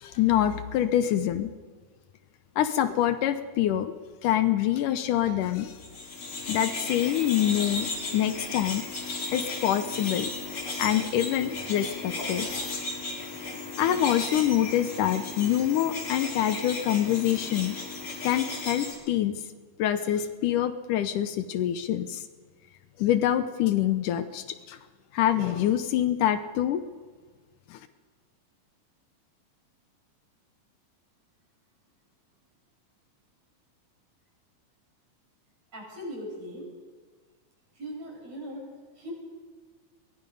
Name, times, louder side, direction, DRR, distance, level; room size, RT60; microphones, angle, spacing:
voice 1, 0.0-1.5 2.6-3.9 4.2-5.7 6.5-8.8 9.3-10.3 10.8-12.8 13.8-17.8 18.2-19.4 19.8-22.2 23.0-24.8 25.1-26.8 27.7-27.8, left 11 dB, 75° left, 10 dB, 2.3 m, -25 dB
sound 1, 5.7-18.9, left 3 dB, 40° left, 4.1 m, -35 dB
voice 2, 35.7-36.7 37.7-38.7 39.0-39.1, equal, 50° right, -2 dB, 8.0 m, -39 dB
23.0 x 21.0 x 5.4 m, 1.5 s
omnidirectional pair, 3.9 m